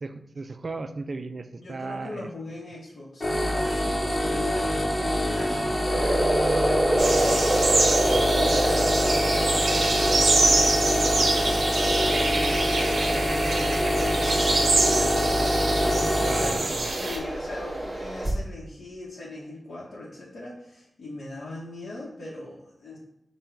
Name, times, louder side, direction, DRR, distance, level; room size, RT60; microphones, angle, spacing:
voice 1, 0.0-2.3 5.5-5.7 8.0-8.3 16.2-16.9, right 3 dB, 50° right, 9 dB, 0.3 m, -36 dB
voice 2, 1.6-7.8 8.3-11.9 12.2-23.0, left 1 dB, 80° left, -6 dB, 0.9 m, -40 dB
sound 1, 3.2-16.5, equal, 20° left, 0.9 m, -25 dB
sound 2, 5.9-18.3, right 1 dB, 15° right, 1.1 m, -29 dB
sound 3, 7.0-17.2, right 2 dB, 70° right, 0.9 m, -26 dB
5.4 x 2.2 x 4.5 m, 0.81 s
wide cardioid pair, 105°, 0 cm